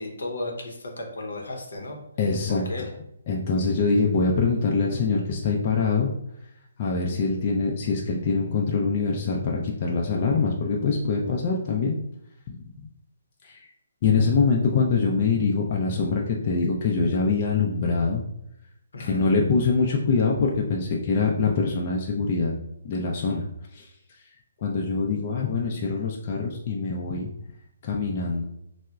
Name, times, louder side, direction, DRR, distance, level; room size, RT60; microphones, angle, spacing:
voice 1, 0.0-2.0 2.5-2.9 18.9-19.2, left 2 dB, 75° left, 1 dB, 0.7 m, -34 dB
voice 2, 2.2-2.9 3.3-6.1 6.8-12.0 12.5-12.7 13.4-13.6 14.0-18.2 19.0-22.5 22.8-23.5 23.7-23.9 24.6-27.3 27.8-28.4, left 4 dB, 40° left, -2 dB, 0.4 m, -24 dB
4.4 x 2.1 x 2.3 m, 0.81 s
figure-of-eight pair, 140°, 0 cm